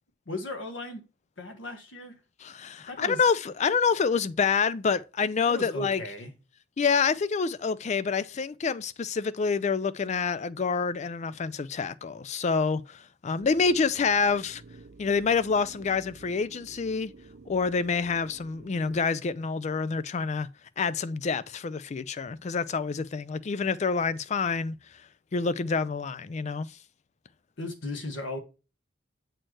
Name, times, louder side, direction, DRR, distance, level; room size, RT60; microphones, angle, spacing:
voice 1, 0.3-1.0 1.4-2.2 2.9-3.3 5.5-6.3 27.6-28.4, left 2 dB, 85° left, 1.4 m, -36 dB
voice 2, 2.4-6.0 6.8-14.6 15.0-17.1 17.5-20.5 20.8-24.8 25.3-26.8, left 5 dB, 35° left, 0.4 m, -27 dB
sound 1, 13.4-19.0, right 3 dB, 60° right, 0.6 m, -51 dB
7.6 x 4.4 x 3.0 m
head